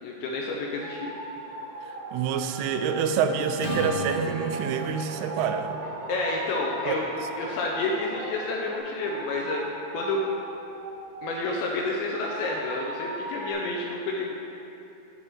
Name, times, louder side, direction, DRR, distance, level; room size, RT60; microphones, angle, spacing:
voice 1, 0.0-1.1 6.1-7.1 7.4-10.3 11.2-14.3, left 2 dB, 80° left, -1 dB, 2.8 m, -29 dB
sound 1, 0.7-8.4 9.0-11.7 12.1-13.5, right 2 dB, 50° right, 2.0 m, -39 dB
sound 2, 0.9-8.8, right 1 dB, 70° right, 3.1 m, -43 dB
voice 2, 1.8-5.8 6.9-7.0, right 7 dB, 90° right, 7 dB, 3.1 m, -27 dB
Acoustic guitar / Strum, 3.6-8.0, right 1 dB, 55° left, 2.3 m, -36 dB
9.2 x 4.2 x 7.3 m, 3.0 s
omnidirectional pair, 5.5 m